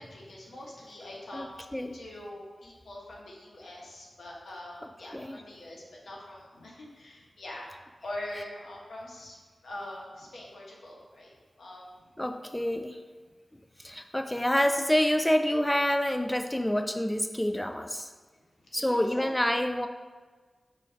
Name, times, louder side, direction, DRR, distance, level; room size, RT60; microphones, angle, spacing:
voice 1, 0.0-7.7 8.0-9.4 9.6-11.3 11.6-11.9 18.7-19.6, left 1 dB, 85° left, -3 dB, 1.3 m, -43 dB
voice 2, 12.2-13.0 13.8-18.1 18.7-19.9, left 1 dB, 10° left, 7 dB, 0.3 m, -27 dB
6.1 x 3.8 x 4.4 m, 1.4 s
wide cardioid pair, 70°, 0 cm